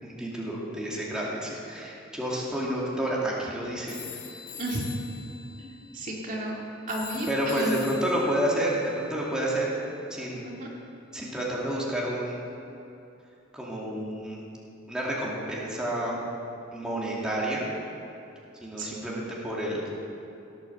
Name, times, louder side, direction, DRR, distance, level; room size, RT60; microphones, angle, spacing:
voice 1, 0.0-4.2 7.3-9.7 10.1-10.4 11.1-12.4 13.5-14.4 14.9-16.2 16.7-17.6 18.6-19.9, right 1 dB, 5° right, -5 dB, 2.4 m, -30 dB
sound 1, 3.9-10.0, left 8 dB, 70° left, 1.6 m, -45 dB
voice 2, 5.6-6.6 6.9-7.9 10.4-10.7 18.8-19.0, right 1 dB, 40° right, -3 dB, 2.1 m, -33 dB
17.0 x 8.7 x 6.9 m, 2.9 s
head